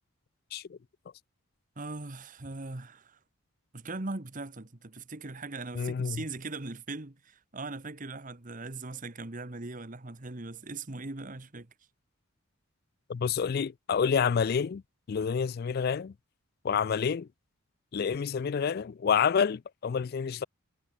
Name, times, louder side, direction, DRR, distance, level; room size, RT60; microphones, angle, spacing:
voice 1, 1.8-3.2 3.7-11.7, right 3 dB, 35° right, 1.3 m, -40 dB
voice 2, 5.7-6.2 13.1-14.8 15.1-16.1 16.6-17.3 17.9-20.4, left 6 dB, 45° left, 0.3 m, -28 dB
head